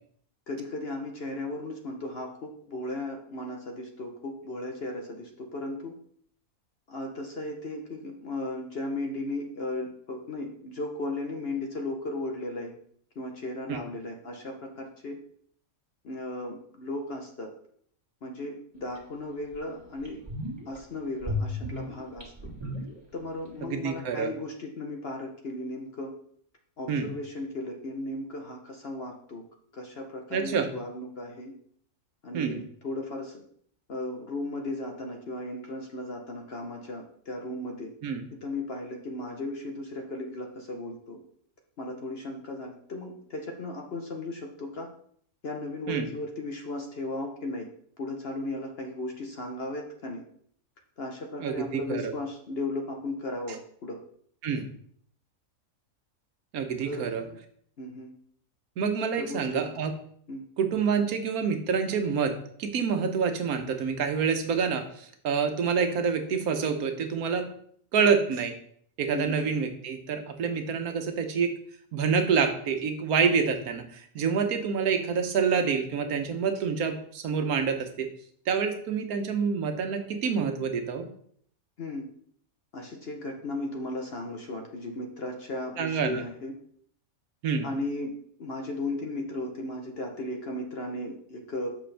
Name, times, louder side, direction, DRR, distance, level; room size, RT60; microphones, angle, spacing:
voice 1, 0.5-5.9 6.9-12.8 13.2-15.2 16.0-17.5 18.2-20.2 20.6-22.5 23.1-26.2 26.8-29.4 29.7-31.5 32.2-33.4 33.9-37.9 38.4-41.2 41.8-44.9 45.4-47.7 48.0-50.2 51.0-54.0 56.8-57.4 57.8-58.1 59.2-59.7 60.3-60.4 69.1-69.4 81.8-82.1 82.7-86.5 87.6-88.1 88.4-91.7, left 2 dB, 50° left, 2 dB, 1.0 m, -36 dB
sound 1, 19.0-19.1 19.5-19.6 20.0-20.8 21.2-23.5 23.7-23.8, left 2 dB, 20° right, 1.8 m, -34 dB
voice 2, 23.7-24.3 26.9-27.1 30.3-30.7 32.3-32.6 38.0-38.2 45.9-46.1 51.4-52.1 54.4-54.7 56.5-57.2 58.8-59.9 60.6-62.3 62.6-67.5 67.9-68.5 69.0-71.5 71.9-78.1 78.5-81.1 85.8-86.2 87.4-87.7, right 6 dB, 85° right, 7 dB, 1.3 m, -27 dB
7.6 x 6.1 x 3.4 m, 0.62 s
omnidirectional pair, 1.5 m